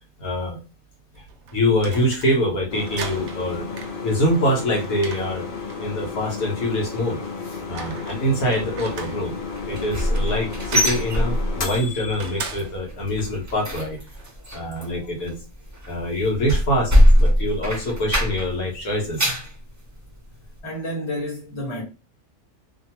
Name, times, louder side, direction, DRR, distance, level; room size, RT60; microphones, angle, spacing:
voice 1, 0.2-0.6 1.5-3.6 4.0-5.4 5.8-7.2 7.7-9.3 9.7-14.0 14.5-15.4 15.9-19.3, left 1 dB, 75° left, 1.4 m, -24 dB
sound 1, 1.1-14.3, right 5 dB, 65° right, 0.7 m, -40 dB
sound 2, 2.7-12.4, left 4 dB, 45° left, 0.7 m, -33 dB
sound 3, 9.5-11.9 12.2-12.5 12.8-18.6 18.9-19.5 20.0-20.1 20.6-20.7, equal, 25° right, 0.4 m, -21 dB
voice 2, 20.6-21.8, left 1 dB, 20° left, 1.2 m, -31 dB
3.0 x 2.2 x 2.8 m
omnidirectional pair, 1.5 m